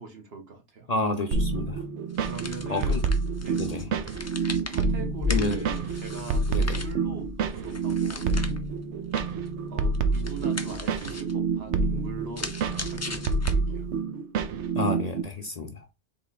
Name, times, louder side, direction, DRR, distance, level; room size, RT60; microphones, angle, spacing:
voice 1, 0.0-0.9 2.2-3.0 3.4-3.6 4.7-8.3 9.6-13.9, right 5 dB, 65° right, 1.3 m, -41 dB
voice 2, 0.9-1.8 2.7-3.0 3.5-3.9 5.3-5.6 6.5-6.8 14.8-15.9, left 2 dB, 40° left, 0.7 m, -30 dB
sound 1, 1.3-15.2, right 4 dB, 85° right, 1.0 m, -28 dB
sound 2, 2.1-14.0, left 4 dB, 25° left, 0.3 m, -37 dB
3.8 x 3.3 x 4.0 m
omnidirectional pair, 1.1 m